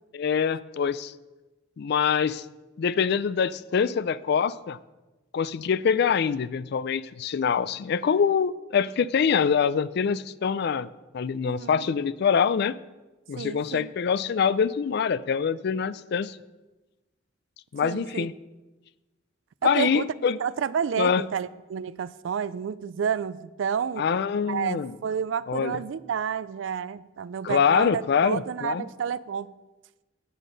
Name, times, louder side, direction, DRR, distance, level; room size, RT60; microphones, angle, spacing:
voice 1, 0.1-1.1 1.8-2.4 2.8-4.8 5.3-10.9 11.1-12.8 13.3-16.4 17.7-18.3 19.6-20.4 21.0-21.2 24.0-24.9 25.5-25.8 27.4-28.8, left 6 dB, 60° left, 0.4 m, -24 dB
voice 2, 11.4-11.9 13.4-13.9 17.8-18.3 19.6-20.1 20.4-24.1 24.5-29.5, right 7 dB, 80° right, 0.4 m, -30 dB
10.0 x 9.2 x 4.0 m
head